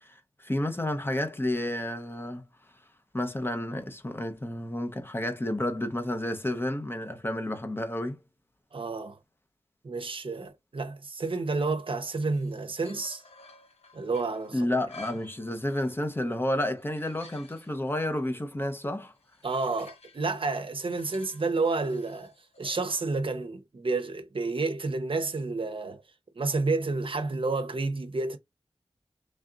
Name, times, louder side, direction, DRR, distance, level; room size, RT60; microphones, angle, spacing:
voice 1, 0.0-2.4 3.1-8.2 14.5-19.1, left 1 dB, 20° left, 0.7 m, -31 dB
voice 2, 8.7-9.2 9.8-13.2 13.9-14.7 19.4-26.0 26.3-28.4, right 3 dB, 60° right, 0.7 m, -30 dB
sound 1, 12.3-16.2 16.6-17.8 19.2-23.1, left 3 dB, 90° left, 0.8 m, -54 dB
3.3 x 2.5 x 3.7 m
wide cardioid pair, 75°, 10 cm